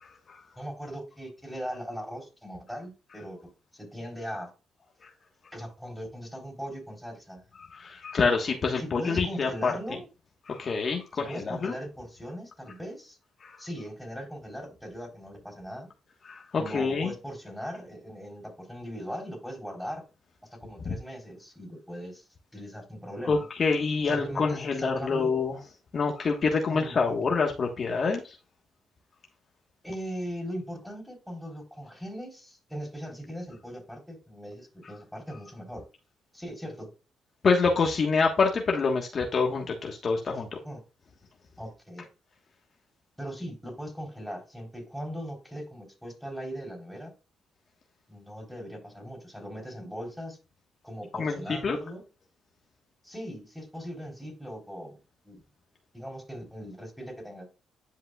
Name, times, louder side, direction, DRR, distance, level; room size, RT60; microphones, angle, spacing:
voice 1, 0.0-0.4 5.0-5.1 7.6-9.7 10.5-11.7 13.4-13.6 16.2-17.1 20.8-20.9 23.3-25.6 25.9-28.4 37.4-40.6 51.1-51.8, left 4 dB, 45° left, 2 dB, 1.3 m, -27 dB
voice 2, 0.6-3.4 3.7-4.5 5.5-7.4 8.8-10.1 11.2-13.2 13.6-15.9 16.6-20.0 20.6-22.2 22.5-23.5 24.1-25.3 26.7-27.0 29.8-35.8 36.3-36.9 40.6-40.8 41.6-42.1 43.2-47.1 48.1-50.4 50.8-52.0 53.0-55.0 55.2-55.4 55.9-57.5, equal, ahead, 0 dB, 3.8 m, -39 dB
10.0 x 5.4 x 2.3 m, 0.31 s
cardioid pair, 90°, 0 cm